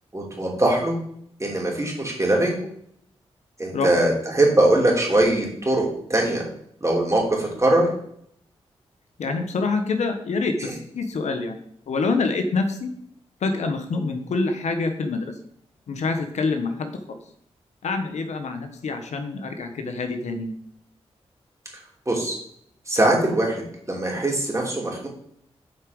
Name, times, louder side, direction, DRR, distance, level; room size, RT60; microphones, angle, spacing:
voice 1, 0.1-1.0 1.4-2.5 3.6-6.4 6.8-7.9 10.6-10.7 22.1-22.4 22.9-23.6 23.9-25.1, right 1 dB, 25° right, -2 dB, 3.2 m, -21 dB
voice 2, 3.7-4.0 9.2-10.7 10.9-11.6 11.9-12.9 13.4-15.3 15.9-17.2 17.8-20.5, left 3 dB, 80° left, 6 dB, 1.1 m, -26 dB
7.4 x 4.6 x 5.3 m, 0.68 s
cardioid pair, 45°, 12 cm